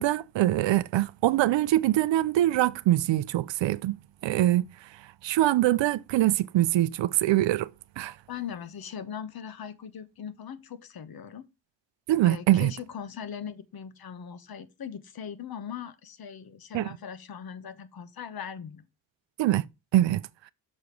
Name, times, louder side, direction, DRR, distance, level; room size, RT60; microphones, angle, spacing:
voice 1, 0.0-4.7 5.2-7.7 8.0-8.1 12.1-12.7 16.7-16.9 19.4-19.6 19.9-20.2, right 14 dB, 80° right, 0.5 m, -23 dB
voice 2, 8.3-11.5 12.2-18.8, left 8 dB, 55° left, 1.0 m, -40 dB
6.4 x 4.7 x 5.2 m
wide cardioid pair, 125°, 43 cm